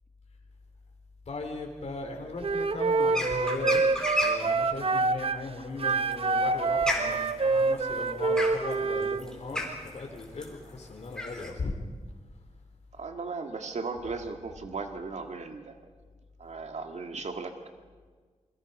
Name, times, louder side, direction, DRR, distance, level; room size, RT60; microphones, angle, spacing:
voice 1, 1.3-11.7, left 3 dB, 60° left, 1 dB, 3.3 m, -37 dB
Wind instrument woodwind instrument, 2.4-5.4 5.8-9.2, right 3 dB, 50° right, 0.9 m, -26 dB
sound 1, 3.1-4.5 5.9-11.5, left 1 dB, 5° left, 4.3 m, -32 dB
voice 2, 12.9-15.8 16.4-17.5, right 4 dB, 65° right, 5 dB, 2.0 m, -36 dB
27.5 x 23.5 x 5.5 m, 1.5 s
wide cardioid pair, 115°, 13 cm